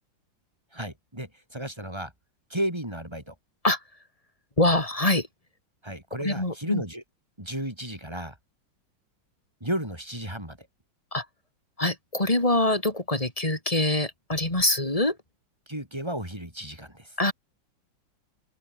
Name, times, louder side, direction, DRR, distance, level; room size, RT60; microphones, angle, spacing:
voice 1, 0.7-2.1 2.5-3.4 5.8-7.0 7.4-8.4 9.6-10.7 15.7-17.2, right 1 dB, 15° right, 6.1 m, -33 dB
voice 2, 4.6-5.3 6.2-6.8 11.1-11.3 11.8-15.2 17.2-17.3, left 1 dB, 15° left, 4.2 m, -24 dB
open air
omnidirectional pair, 2.1 m